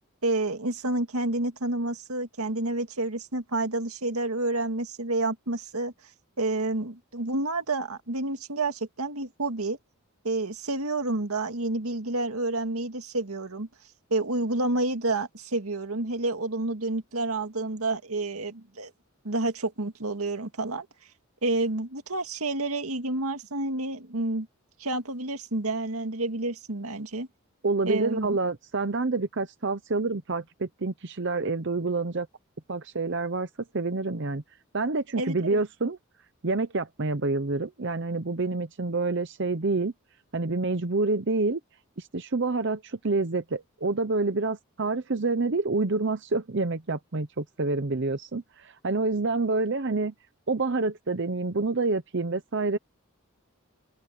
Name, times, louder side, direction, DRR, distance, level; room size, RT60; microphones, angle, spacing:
voice 1, 0.2-5.9 6.4-9.8 10.2-13.7 14.1-18.9 19.2-20.9 21.4-24.5 24.8-27.3 27.9-28.4 35.2-35.6, right 2 dB, 90° right, 2.1 m, -29 dB
voice 2, 27.6-32.3 32.7-33.5 33.7-34.4 34.7-36.0 36.4-39.9 40.3-41.6 42.0-50.1 50.5-52.8, right 3 dB, 55° right, 0.8 m, -27 dB
open air
head